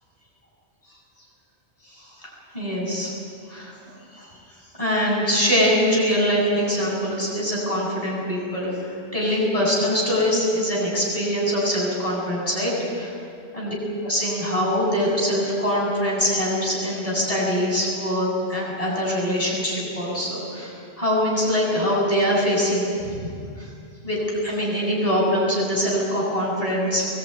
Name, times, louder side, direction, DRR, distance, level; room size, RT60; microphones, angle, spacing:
voice 1, 1.9-3.1 3.5-3.7 4.1-4.3 4.8-12.7 13.0-13.1 13.5-13.7 14.0-23.3 23.6-23.7 24.0-27.1, equal, 35° left, -5 dB, 8.0 m, -23 dB
23.0 x 21.0 x 9.4 m, 2.4 s
omnidirectional pair, 1.1 m